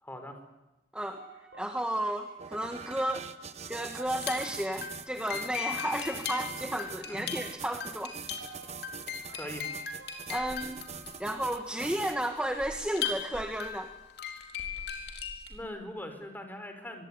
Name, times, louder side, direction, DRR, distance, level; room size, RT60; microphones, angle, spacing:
voice 1, 0.0-0.4 7.1-7.2 9.3-9.6 15.5-17.1, left 1 dB, 10° left, 6 dB, 4.6 m, -41 dB
sound 1, 1.2-12.5, right 2 dB, 75° right, 7.2 m, -53 dB
voice 2, 1.6-3.3 3.7-8.2 9.3-9.4 10.3-10.8 11.2-13.9, right 1 dB, 5° right, 5 dB, 1.6 m, -33 dB
sound 2, 2.4-12.4, right 6 dB, 40° right, 1.1 m, -44 dB
sound 3, 4.1-15.6, left 7 dB, 65° left, 4.3 m, -39 dB
25.0 x 22.5 x 9.9 m, 1.0 s
head